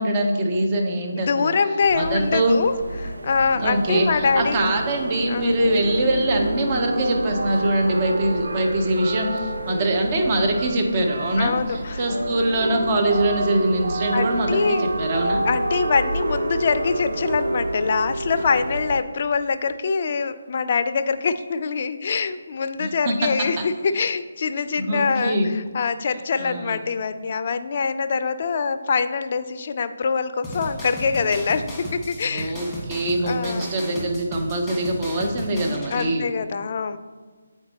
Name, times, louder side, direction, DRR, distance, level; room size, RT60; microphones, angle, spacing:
voice 1, 0.0-1.6 1.9-2.6 3.6-15.4 22.8-23.3 24.8-25.5 26.4-26.8 32.3-36.3, right 1 dB, 30° right, 2 dB, 0.9 m, -23 dB
voice 2, 1.1-2.7 3.0-4.6 5.2-5.5 11.4-12.0 14.1-14.9 15.4-31.7 31.9-32.5 33.2-33.7 35.9-37.0, left 5 dB, 45° left, 11 dB, 0.4 m, -24 dB
sound 1, 1.8-19.0, right 1 dB, 75° right, 0.5 m, -28 dB
sound 2, 30.4-36.1, equal, 5° left, 1.4 m, -35 dB
8.2 x 4.5 x 2.9 m, 1.5 s
figure-of-eight pair, 150°, 0 cm